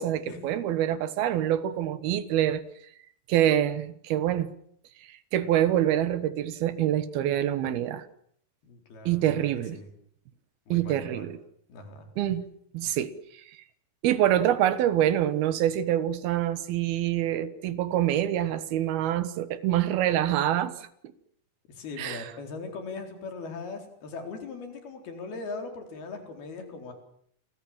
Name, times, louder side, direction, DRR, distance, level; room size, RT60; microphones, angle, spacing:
voice 1, 0.0-2.6 3.3-4.5 5.0-8.1 9.1-9.8 10.7-11.4 12.2-12.5 12.7-13.6 14.0-20.9 22.0-22.3, right 11 dB, 85° right, 3.3 m, -26 dB
voice 2, 8.6-9.9 10.7-11.3 11.7-12.1 21.7-26.9, left 3 dB, 85° left, 6.1 m, -40 dB
29.0 x 23.0 x 7.5 m
omnidirectional pair, 4.3 m